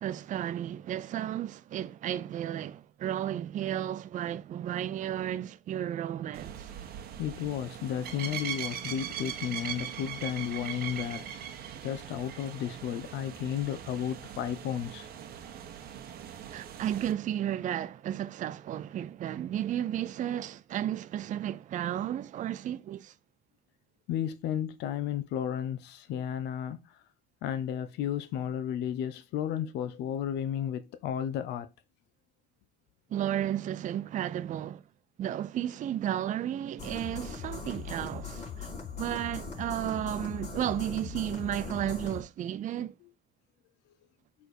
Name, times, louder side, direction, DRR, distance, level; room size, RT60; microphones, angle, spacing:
voice 1, 0.0-6.7 16.5-23.2 33.1-34.8 35.2-38.7 39.0-43.0, right 11 dB, 50° right, 0.5 m, -33 dB
sound 1, 6.3-17.1, right 9 dB, 65° right, 1.6 m, -40 dB
voice 2, 7.2-11.4 11.8-15.1 24.1-27.0 27.4-31.7, left 9 dB, 85° left, 0.9 m, -33 dB
sound 2, 36.8-42.2, left 5 dB, 40° left, 4.8 m, -40 dB
6.7 x 4.3 x 4.5 m
cardioid pair, 110°, 17 cm